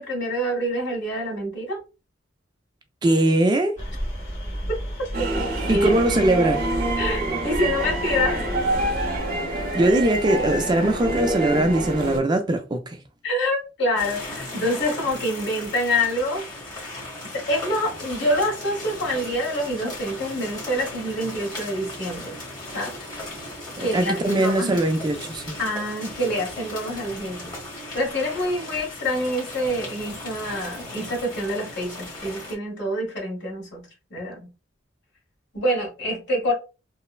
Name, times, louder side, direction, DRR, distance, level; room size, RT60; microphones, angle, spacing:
voice 1, 0.0-1.8 4.7-4.8 5.7-5.9 7.0-8.5 13.2-22.3 22.7-23.0 23.8-24.8 25.6-27.5 27.9-33.8 34.1-34.5 35.5-36.5, equal, 65° left, 1.4 m, -26 dB
voice 2, 3.0-3.7 5.7-6.6 9.5-13.0 23.8-25.6, right 1 dB, 25° right, 0.4 m, -21 dB
sound 1, 3.8-9.2, equal, 40° left, 1.4 m, -32 dB
sound 2, 5.1-12.2, right 2 dB, 50° right, 0.7 m, -26 dB
sound 3, 14.0-32.5, left 1 dB, 25° left, 1.2 m, -37 dB
3.0 x 2.0 x 2.4 m
head